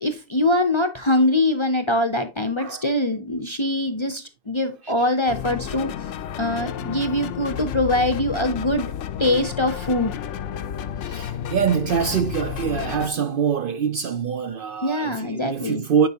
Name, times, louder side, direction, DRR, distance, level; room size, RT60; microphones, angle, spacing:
voice 1, 0.0-5.9 6.4-8.9 9.2-10.1 14.8-15.8, left 1 dB, 35° left, 0.5 m, -23 dB
sound 1, 5.3-13.1, left 9 dB, 80° left, 0.9 m, -31 dB
voice 2, 11.0-16.1, right 7 dB, 60° right, 0.6 m, -25 dB
9.8 x 4.7 x 2.8 m
omnidirectional pair, 1.2 m